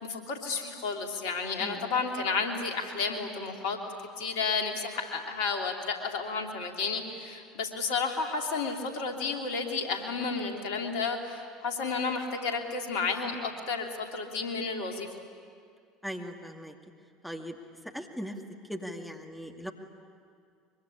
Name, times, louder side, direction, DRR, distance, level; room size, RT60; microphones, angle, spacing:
voice 1, 0.0-3.8 4.2-15.1, left 4 dB, 65° left, 3 dB, 2.9 m, -32 dB
voice 2, 16.0-16.7 17.2-17.6 17.9-18.3 18.7-19.7, equal, ahead, 3 dB, 2.3 m, -39 dB
24.0 x 23.5 x 10.0 m, 2.2 s
figure-of-eight pair, 65°, 0 cm